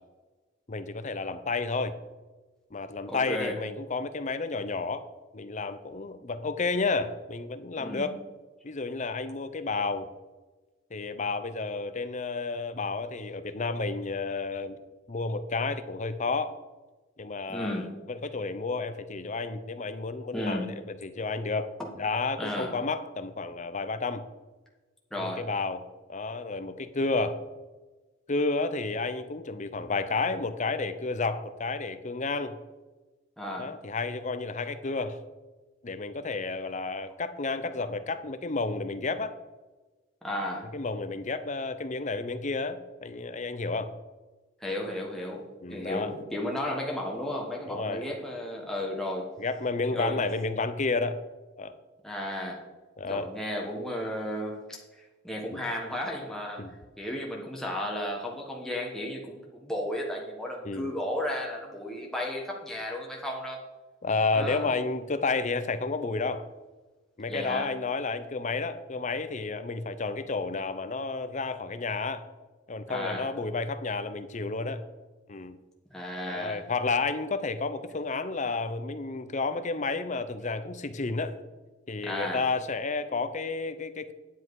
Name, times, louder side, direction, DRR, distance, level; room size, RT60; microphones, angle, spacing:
voice 1, 0.7-2.0 2.7-5.1 5.3-8.1 8.6-10.1 10.9-14.8 15.1-16.6 17.2-20.7 21.0-24.2 25.1-27.4 28.3-32.5 33.6-35.2 35.8-39.3 40.7-43.9 45.6-46.1 47.7-48.1 49.4-51.2 51.6-51.8 53.0-53.3 55.5-55.6 56.6-56.7 60.6-60.9 64.0-66.5 67.2-72.2 72.7-74.8 75.3-75.6 76.3-81.4 81.9-84.1, left 3 dB, 40° left, 11 dB, 0.7 m, -31 dB
voice 2, 3.1-3.6 7.8-8.2 17.5-17.9 20.3-20.7 21.8-21.9 22.4-22.7 25.1-25.4 33.4-33.7 40.2-40.7 44.6-45.4 45.7-49.3 49.9-50.3 52.0-52.6 53.1-56.6 57.0-63.6 64.3-64.7 67.3-67.7 72.9-73.3 75.9-76.6 82.0-82.4, left 1 dB, 5° left, -2 dB, 1.2 m, -34 dB
10.0 x 7.6 x 4.7 m, 1.2 s
head